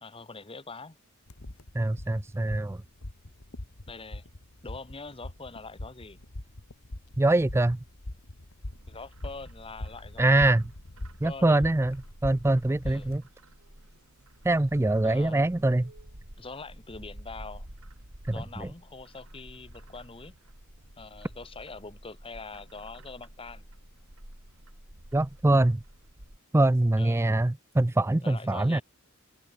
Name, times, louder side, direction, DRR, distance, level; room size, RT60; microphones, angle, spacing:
voice 1, 0.0-1.0 3.9-4.3 4.6-6.2 8.9-10.5 11.2-11.6 12.8-13.1 15.0-15.6 16.4-17.7 18.3-20.4 21.0-23.6 27.0-27.3 28.2-28.8, left 3 dB, 25° left, 1.3 m, -44 dB
sound 1, 1.3-13.2, left 1 dB, 70° left, 1.9 m, -42 dB
voice 2, 1.7-2.8 7.2-7.8 10.2-10.6 11.2-13.2 14.4-15.9 18.3-18.7 25.1-25.8 26.5-28.8, right 2 dB, 10° right, 0.4 m, -24 dB
Bird, 8.6-26.4, right 1 dB, 75° right, 5.0 m, -50 dB
open air
head